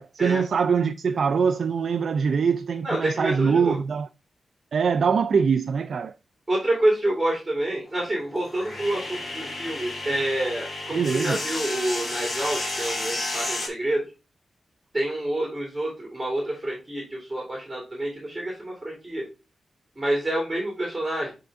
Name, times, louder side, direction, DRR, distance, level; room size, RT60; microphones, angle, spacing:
voice 1, 0.0-4.1 4.7-6.1 10.9-11.4, right 6 dB, 65° right, 0.3 m, -23 dB
voice 2, 2.8-3.8 6.5-14.0 14.9-19.3 20.0-21.3, right 1 dB, 15° right, 2.6 m, -27 dB
sound 1, 7.9-13.7, left 2 dB, 30° left, 2.1 m, -32 dB
7.7 x 3.7 x 3.4 m
wide cardioid pair, 110°, 0 cm